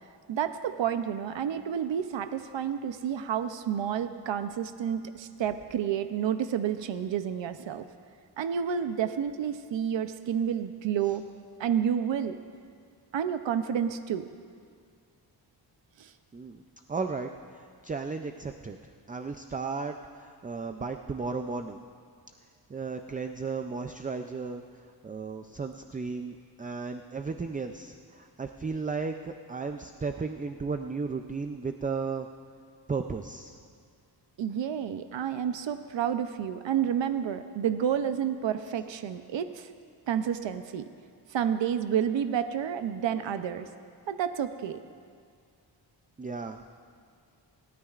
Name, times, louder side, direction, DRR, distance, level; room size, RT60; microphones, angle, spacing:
voice 1, 0.3-7.8 8.4-11.2 11.6-12.4 13.1-14.3 16.0-16.1 34.4-39.7 40.1-40.9 41.3-43.7 44.1-44.8, right 8 dB, 90° right, 9 dB, 0.6 m, -30 dB
voice 2, 16.9-18.8 19.1-21.8 22.7-24.6 25.0-32.3 32.9-33.6 46.2-46.6, right 4 dB, 20° right, 6 dB, 0.3 m, -34 dB
28.0 x 13.0 x 2.4 m, 2.2 s
wide cardioid pair, 170°, 43 cm